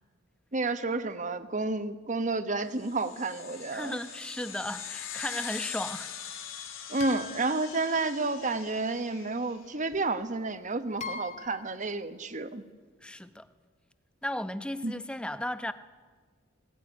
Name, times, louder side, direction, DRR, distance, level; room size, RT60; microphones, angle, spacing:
voice 1, 0.5-4.0 6.9-12.6 14.8-14.9, right 3 dB, 40° right, 11 dB, 1.2 m, -31 dB
sound 1, 2.8-9.6, left 8 dB, 90° left, 2.9 m, -42 dB
voice 2, 3.7-6.1 13.0-13.5 14.2-15.7, left 1 dB, 5° left, 11 dB, 0.9 m, -35 dB
sound 2, 7.0-8.5 9.9-10.0 11.0-11.8, left 4 dB, 35° left, 1.8 m, -42 dB
18.5 x 18.5 x 9.7 m, 1.5 s
head